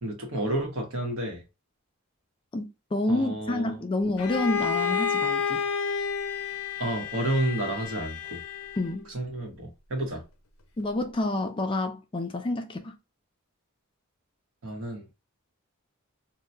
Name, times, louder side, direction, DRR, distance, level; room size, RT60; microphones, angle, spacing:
voice 1, 0.0-1.4 3.1-3.8 6.8-8.4 9.1-10.2 14.6-15.1, right 1 dB, 65° right, 1.0 m, -30 dB
voice 2, 2.5-5.6 8.8-9.0 10.8-13.0, left 2 dB, 25° left, 0.3 m, -28 dB
Bowed string instrument, 4.2-9.0, left 6 dB, 75° left, 0.6 m, -30 dB
2.8 x 2.2 x 3.2 m
head